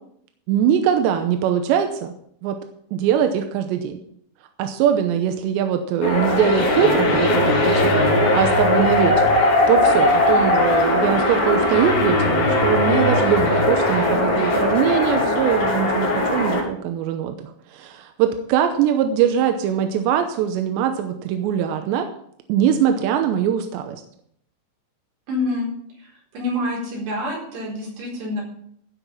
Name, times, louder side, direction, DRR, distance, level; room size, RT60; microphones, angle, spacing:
voice 1, 0.5-2.1 2.4-2.6 2.9-4.0 4.6-8.1 8.3-9.3 9.7-22.1 22.5-24.0, right 9 dB, 80° right, 6 dB, 2.7 m, -22 dB
sound 1, 6.0-16.6, left 1 dB, 50° left, 4.3 m, -19 dB
voice 2, 25.3-25.7 26.3-28.4, left 1 dB, 60° right, -3 dB, 6.2 m, -26 dB
15.0 x 5.9 x 7.2 m, 0.68 s
omnidirectional pair, 5.7 m